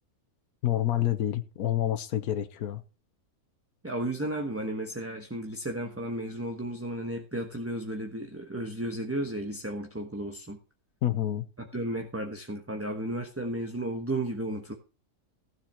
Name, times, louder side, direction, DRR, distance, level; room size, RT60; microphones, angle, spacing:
voice 1, 0.6-2.8 11.0-11.5, left 12 dB, 75° left, 1.4 m, -28 dB
voice 2, 3.8-10.6 11.6-14.7, right 1 dB, 10° right, 1.1 m, -33 dB
15.5 x 7.4 x 4.5 m
omnidirectional pair, 1.6 m